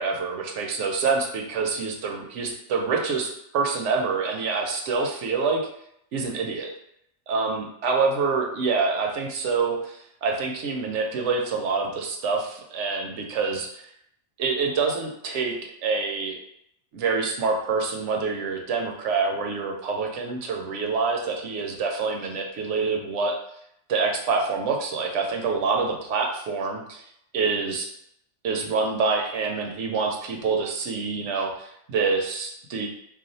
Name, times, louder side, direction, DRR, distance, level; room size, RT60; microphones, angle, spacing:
voice 1, 0.0-5.6 6.1-6.7 7.3-13.8 14.4-16.4 16.9-23.4 23.9-27.0 27.3-27.9 28.4-32.9, right 4 dB, 80° right, 2 dB, 0.9 m, -26 dB
2.4 x 2.3 x 3.9 m, 0.74 s
omnidirectional pair, 1.2 m